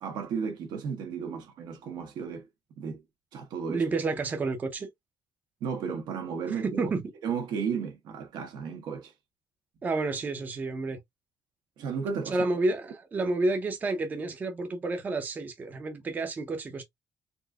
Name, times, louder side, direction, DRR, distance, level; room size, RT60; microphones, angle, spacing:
voice 1, 0.0-2.5 2.8-3.0 3.3-3.8 5.6-6.9 7.2-9.1 11.8-12.5, right 6 dB, 75° right, 1.3 m, -34 dB
voice 2, 3.7-4.9 6.5-7.0 9.8-11.0 12.3-16.8, right 3 dB, 25° right, 0.6 m, -30 dB
4.3 x 2.7 x 2.3 m
cardioid pair, 170°, 7 cm